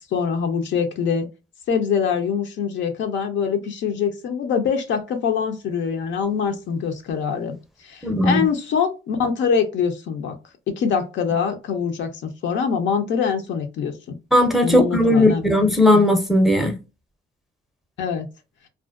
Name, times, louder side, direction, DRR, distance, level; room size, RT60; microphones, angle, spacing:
voice 1, 0.1-1.3 1.7-7.6 7.8-10.4 10.7-14.2 14.6-15.5 18.0-18.3, left 6 dB, 70° left, 0.6 m, -24 dB
voice 2, 8.0-8.4 14.3-16.8, left 1 dB, ahead, 0.5 m, -17 dB
2.4 x 2.1 x 2.4 m
cardioid pair, 90°, 20 cm